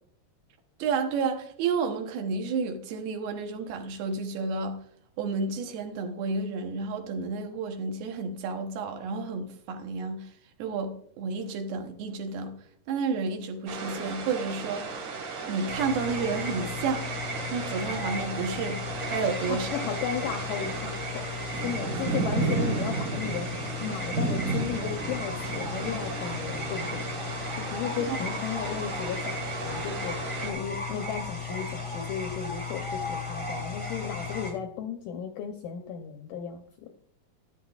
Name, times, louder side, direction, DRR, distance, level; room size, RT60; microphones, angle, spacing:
voice 1, 0.8-4.8 5.2-10.3 10.6-12.6 12.9-15.1 15.5-17.1 17.5-19.7 28.1-28.2, right 4 dB, 75° right, 2.8 m, -31 dB
sound 1, 13.7-30.5, right 4 dB, 55° right, 3.0 m, -34 dB
sound 2, 15.7-34.5, left 3 dB, 5° left, 1.1 m, -35 dB
voice 2, 19.5-23.5 23.8-27.1 27.5-30.2 30.4-36.6, left 8 dB, 80° left, 2.0 m, -35 dB
12.0 x 11.0 x 2.4 m
omnidirectional pair, 4.5 m